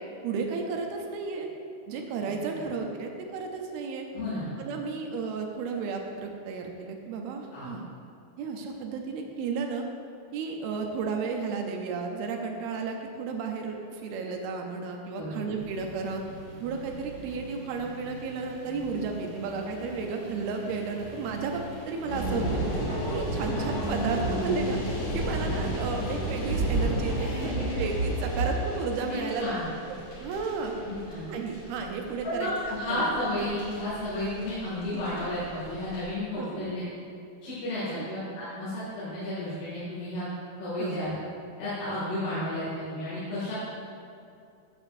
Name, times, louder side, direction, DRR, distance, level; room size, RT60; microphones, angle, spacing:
voice 1, 0.2-1.5 1.9-4.1 4.6-7.8 8.4-9.9 10.3-16.2 16.6-22.6 23.1-24.8 25.1-29.5 30.2-30.7 31.3-33.1 34.9-35.2 36.4-36.7 37.9-38.1 40.8-41.0, right 4 dB, 80° right, 3 dB, 2.5 m, -33 dB
voice 2, 4.1-4.5 7.5-7.7 15.1-15.4 27.2-27.9 29.0-29.7 30.8-31.3 32.2-36.8 37.4-40.3 40.6-41.1 41.6-43.5, left 1 dB, 80° left, -12 dB, 4.2 m, -32 dB
sound 1, 15.5-25.9, right 1 dB, 35° right, 1.3 m, -45 dB
sound 2, 22.1-36.1, right 1 dB, 60° left, 3.7 m, -31 dB
11.5 x 7.7 x 2.6 m, 2.5 s
omnidirectional pair, 4.5 m